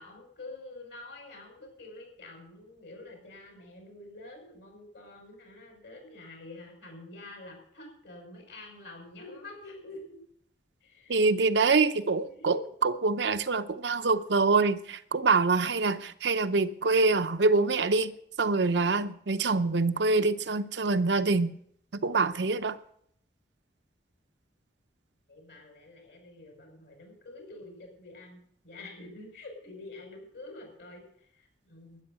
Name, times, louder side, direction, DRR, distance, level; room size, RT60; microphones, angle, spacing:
voice 1, 0.0-10.2 10.8-11.5 12.1-12.6 25.3-32.0, left 2 dB, 70° left, 5.8 m, -47 dB
voice 2, 11.1-21.5 21.9-22.8, right 3 dB, 80° right, 0.7 m, -25 dB
12.5 x 10.0 x 6.8 m
head